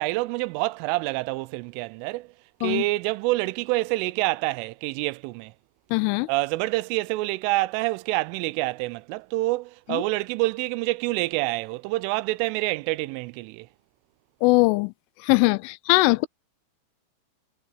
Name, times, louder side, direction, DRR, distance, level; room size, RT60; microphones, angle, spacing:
voice 1, 0.0-2.3 2.6-5.5 6.3-13.7, right 21 dB, 90° right, 3.2 m, -27 dB
voice 2, 5.9-6.3 9.9-10.0 14.4-14.9 15.2-16.3, left 23 dB, 90° left, 3.2 m, -21 dB
omnidirectional pair, 5.6 m